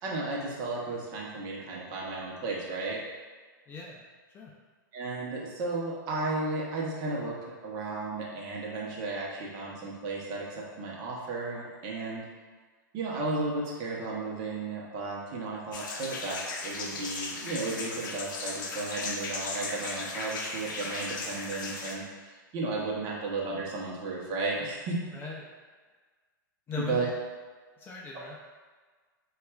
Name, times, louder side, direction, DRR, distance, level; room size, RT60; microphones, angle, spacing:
voice 1, 0.0-3.0 4.9-7.4 7.6-12.2 12.9-25.0 26.8-27.1 28.1-28.2, right 3 dB, 35° right, -3 dB, 0.8 m, -34 dB
voice 2, 3.7-4.0 4.3-4.5 25.1-25.5 26.7-27.1 27.8-28.4, left 4 dB, 20° left, -3 dB, 0.4 m, -38 dB
sound 1, 15.7-21.9, left 3 dB, 70° left, 0.5 m, -37 dB
4.0 x 2.3 x 2.3 m, 1.5 s
hypercardioid pair, 130°, 11 cm